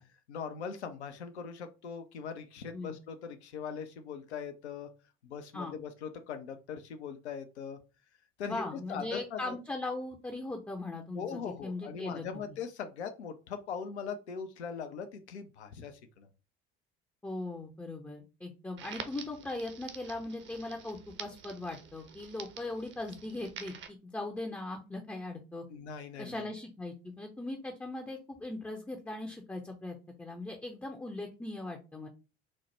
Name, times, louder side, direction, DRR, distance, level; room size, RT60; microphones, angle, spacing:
voice 1, 0.3-4.9 5.2-7.8 8.4-8.6 8.9-9.6 11.1-16.3 25.7-26.5, left 6 dB, 80° left, 7 dB, 0.5 m, -40 dB
voice 2, 8.5-12.3 17.2-25.6 26.2-32.1, left 2 dB, 5° left, 2 dB, 0.5 m, -39 dB
Crackle, 18.8-23.9, right 7 dB, 35° right, 0.6 m, -48 dB
4.0 x 2.1 x 3.1 m, 0.31 s
figure-of-eight pair, 60°, 33 cm